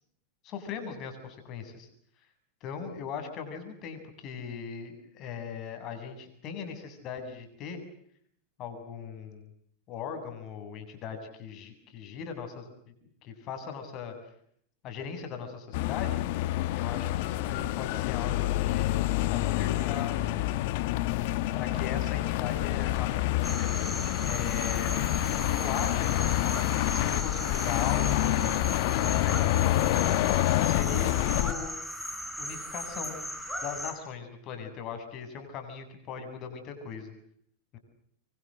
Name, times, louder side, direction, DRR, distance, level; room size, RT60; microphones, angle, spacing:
voice 1, 0.4-1.9 2.6-7.8 8.6-9.5 9.9-12.9 13.2-14.1 14.8-16.2 16.8-19.0 19.3-20.2 21.5-23.7 24.3-24.9 25.5-26.1 26.8-30.0 30.6-31.7 32.4-33.2 33.6-37.1 37.7-37.8, left 6 dB, 45° left, 7 dB, 7.7 m, -39 dB
sound 1, 15.7-31.5, left 15 dB, 60° left, 1.4 m, -27 dB
sound 2, 23.4-33.9, equal, ahead, 6.2 m, -37 dB
25.5 x 24.5 x 7.9 m, 0.68 s
hypercardioid pair, 105°, 0 cm